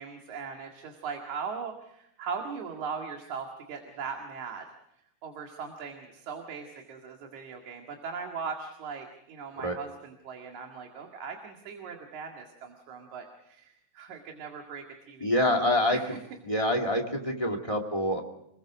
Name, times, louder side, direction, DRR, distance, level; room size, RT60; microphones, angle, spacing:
voice 1, 0.0-4.7 5.2-15.4 15.6-16.2, right 5 dB, 75° right, 3 dB, 3.4 m, -39 dB
voice 2, 15.2-16.0 16.4-18.2, left 1 dB, 10° left, 4 dB, 2.1 m, -26 dB
29.0 x 20.5 x 5.0 m, 0.77 s
omnidirectional pair, 3.4 m